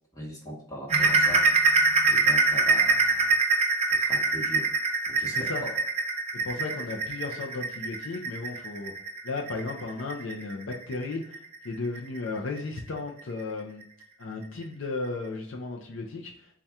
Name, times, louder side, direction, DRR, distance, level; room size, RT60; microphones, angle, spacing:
voice 1, 0.1-1.5 2.1-3.3 3.9-4.7 5.0-5.8, equal, 15° left, -3 dB, 1.1 m, -40 dB
sound 1, 0.9-12.2 12.6-12.8 13.2-13.3 13.8-13.9, right 3 dB, 30° right, 0.5 m, -24 dB
voice 2, 5.3-5.6 6.4-8.9 9.2-11.4 11.6-13.8 14.2-16.3, left 3 dB, 65° left, 0 dB, 0.5 m, -34 dB
4.1 x 2.3 x 3.4 m, 0.67 s
head